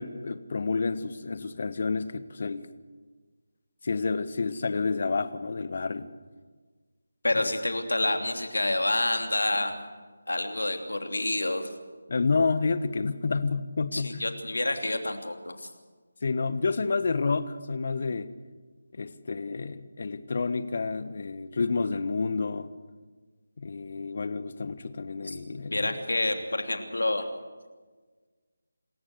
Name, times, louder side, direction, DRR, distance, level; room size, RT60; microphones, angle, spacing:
voice 1, 0.0-2.7 3.8-6.1 7.3-7.5 12.1-14.2 16.2-18.3 18.9-22.7 23.6-25.9, left 4 dB, 50° left, 13 dB, 1.3 m, -29 dB
voice 2, 7.2-9.8 10.3-11.7 13.9-15.7 25.2-25.4 25.6-27.3, left 2 dB, 75° left, 5 dB, 3.0 m, -28 dB
27.0 x 14.5 x 8.1 m, 1.4 s
figure-of-eight pair, 160°, 0 cm